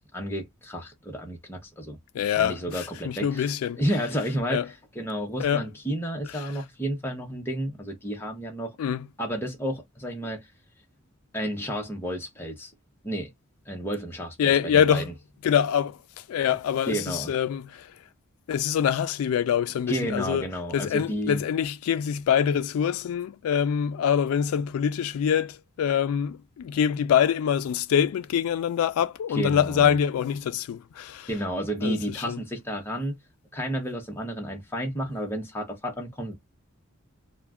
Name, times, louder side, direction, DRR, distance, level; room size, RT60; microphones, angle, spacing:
voice 1, 0.1-2.0 2.4-3.5 3.7-4.6 4.9-8.8 9.2-10.5 11.3-12.7 13.0-13.3 13.7-15.0 16.9-17.3 19.9-21.4 29.3-29.9 31.3-33.1 33.5-36.3, equal, 10° left, 0.7 m, -31 dB
voice 2, 2.1-3.8 4.5-4.7 5.4-5.6 6.4-6.5 8.8-9.1 14.4-15.1 15.4-16.0 16.3-17.9 18.5-20.5 20.7-31.3 31.8-32.4, left 8 dB, 85° left, 0.3 m, -25 dB
2.3 x 2.1 x 3.3 m
head